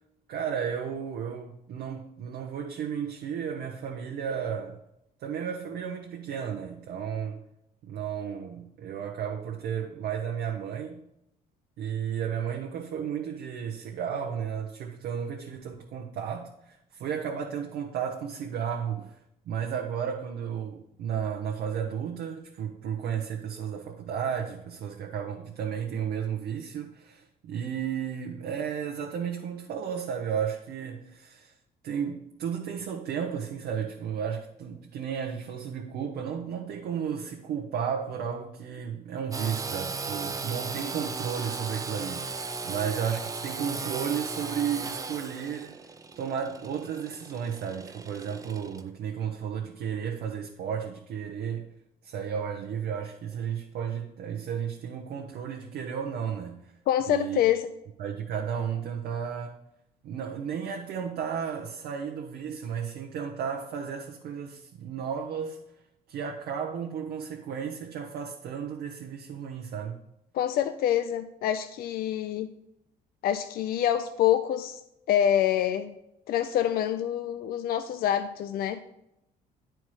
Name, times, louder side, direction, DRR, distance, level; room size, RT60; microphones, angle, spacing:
voice 1, 0.3-4.8 5.2-7.4 7.8-11.0 11.8-19.2 19.5-31.5 31.8-45.8 46.2-51.7 52.0-56.7 57.1-57.4 58.0-59.6 60.0-65.6 66.1-70.0, right 7 dB, 70° right, 0.8 m, -33 dB
Engine / Sawing, 39.3-48.8, right 4 dB, 20° right, 0.5 m, -36 dB
voice 2, 56.9-57.7 70.3-72.5 73.2-74.8 75.1-75.9 76.3-78.8, left 10 dB, 60° left, 0.4 m, -26 dB
9.4 x 4.5 x 4.7 m
cardioid pair, 110°, 17 cm